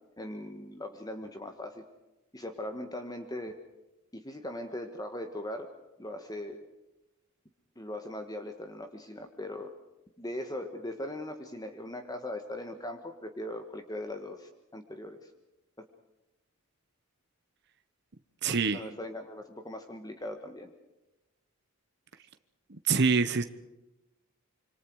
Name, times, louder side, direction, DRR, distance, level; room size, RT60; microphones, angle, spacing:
voice 1, 0.2-1.8 2.3-3.5 4.1-5.7 6.0-6.6 7.7-9.7 10.2-15.3 15.8-15.9 18.5-20.7, left 1 dB, 15° left, 6 dB, 1.5 m, -39 dB
voice 2, 18.4-18.8 22.7-23.4, right 5 dB, 50° right, 9 dB, 1.0 m, -25 dB
27.0 x 25.5 x 4.8 m, 1.0 s
head